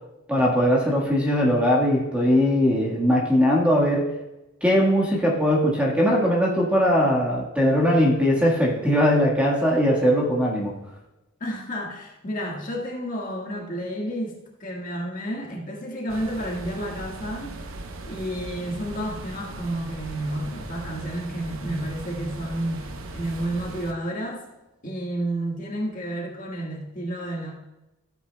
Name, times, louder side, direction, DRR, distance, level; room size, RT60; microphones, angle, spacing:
voice 1, 0.3-4.1 4.6-10.7, equal, 5° right, -3 dB, 1.5 m, -20 dB
voice 2, 11.4-14.3 14.6-17.5 18.1-24.5 24.8-27.5, right 1 dB, 40° left, -2 dB, 1.6 m, -31 dB
sound 1, 16.1-23.9, right 2 dB, 65° right, 0.8 m, -38 dB
14.0 x 8.3 x 2.2 m, 1.0 s
head